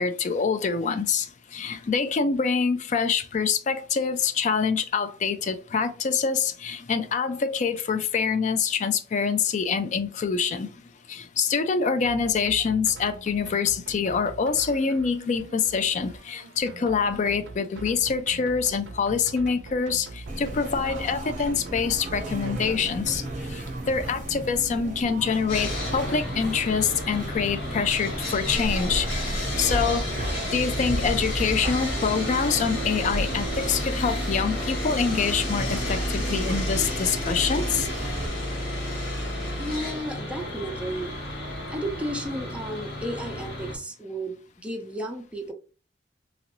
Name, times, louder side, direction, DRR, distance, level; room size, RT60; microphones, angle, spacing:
voice 1, 0.0-10.7 11.1-23.2 23.5-29.1 29.4-30.0 30.5-37.9, left 5 dB, 45° left, 0.4 m, -25 dB
sound 1, 12.0-26.3, right 3 dB, 90° right, 0.4 m, -44 dB
sound 2, 20.3-38.3, right 1 dB, 45° right, 0.8 m, -34 dB
Sawing, 25.5-43.8, left 1 dB, 80° left, 1.3 m, -31 dB
voice 2, 39.6-41.1 41.7-45.5, right 1 dB, 5° right, 0.6 m, -33 dB
3.0 x 2.5 x 2.9 m
head